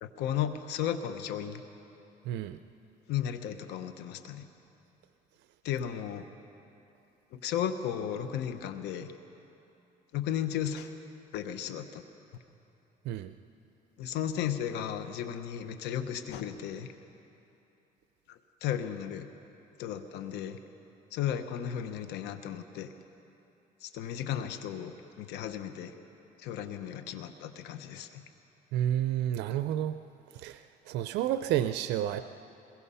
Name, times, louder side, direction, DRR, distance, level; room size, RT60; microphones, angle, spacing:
voice 1, 0.0-1.6 3.1-4.4 5.6-6.3 7.3-9.1 10.1-10.9 11.3-12.0 14.0-16.9 18.3-19.3 19.8-20.6 21.1-22.9 23.8-25.9 26.4-28.2, left 9 dB, 85° left, 9 dB, 1.0 m, -34 dB
voice 2, 2.3-2.6 13.0-13.3 28.7-30.0 30.3-32.2, right 11 dB, 85° right, 10 dB, 0.6 m, -30 dB
23.0 x 21.5 x 5.6 m, 2.9 s
cardioid pair, 110°, 17 cm